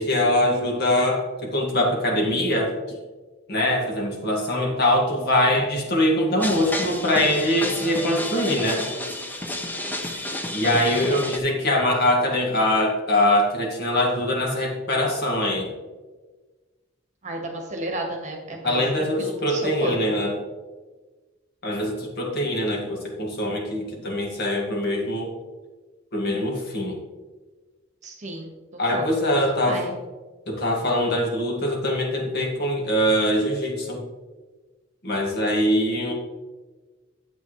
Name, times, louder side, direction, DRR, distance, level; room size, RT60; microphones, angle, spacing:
voice 1, 0.0-3.0 3.5-8.9 10.1-15.7 18.6-20.4 21.6-25.3 26.1-27.0 28.8-29.8 30.5-34.0 35.0-36.1, left 1 dB, 55° left, 0 dB, 1.8 m, -23 dB
sound 1, 6.4-11.4, left 1 dB, 10° left, 0.7 m, -31 dB
voice 2, 17.2-20.2 28.0-28.5 28.9-29.1 29.7-29.9, right 1 dB, 35° right, 2 dB, 1.4 m, -32 dB
8.7 x 8.1 x 3.1 m, 1.3 s
head